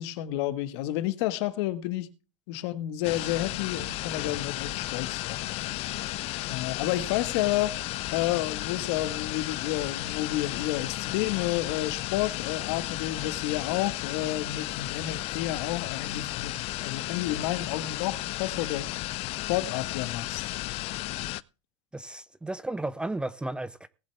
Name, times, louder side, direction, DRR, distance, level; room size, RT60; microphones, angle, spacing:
voice 1, 0.0-2.1 2.5-5.8 6.5-7.8 8.1-18.9 19.3-20.4, left 14 dB, 60° left, 1.6 m, -30 dB
sound 1, 3.0-21.4, left 18 dB, 40° left, 0.5 m, -34 dB
voice 2, 21.9-23.9, right 2 dB, 5° right, 0.6 m, -34 dB
19.5 x 7.7 x 3.4 m
supercardioid pair, 135°, 16 cm